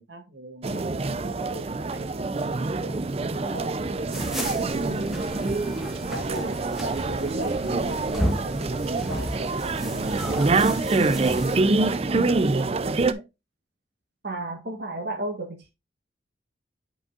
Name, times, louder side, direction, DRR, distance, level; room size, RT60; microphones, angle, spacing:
voice 1, 0.0-3.0 3.3-5.6 6.1-13.3, right 1 dB, 80° right, 1.7 m, -39 dB
sound 1, 0.6-13.1, right 3 dB, 30° right, 0.4 m, -26 dB
sound 2, 4.1-11.6, equal, ahead, 1.3 m, -34 dB
voice 2, 14.2-15.7, right 2 dB, 65° right, 1.3 m, -32 dB
8.6 x 5.3 x 2.4 m
head